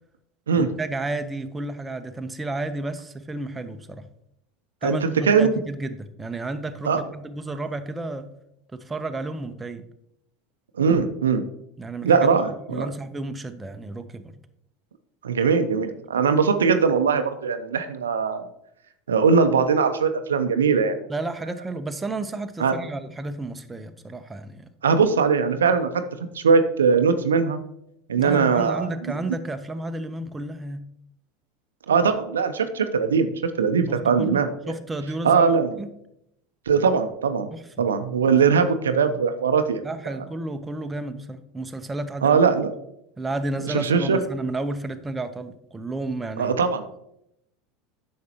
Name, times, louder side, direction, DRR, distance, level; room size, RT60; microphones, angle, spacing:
voice 1, 0.5-4.0 4.8-8.3 8.7-9.8 11.8-12.4 12.7-14.3 21.1-24.7 28.2-30.8 33.9-35.5 35.8-35.9 37.5-37.6 38.2-38.3 39.8-42.4 43.2-46.6, right 2 dB, 15° right, 8 dB, 0.8 m, -32 dB
voice 2, 4.8-5.5 6.8-7.0 10.8-11.4 12.0-12.9 15.2-18.4 19.1-21.0 22.6-22.8 24.8-26.0 26.3-27.6 28.1-28.9 31.9-34.7 35.2-35.8 36.7-37.5 37.8-40.2 42.2-42.7 43.7-44.2 46.4-46.8, right 5 dB, 80° right, 9 dB, 0.6 m, -20 dB
9.5 x 6.6 x 2.9 m, 0.78 s
hypercardioid pair, 80°, 0 cm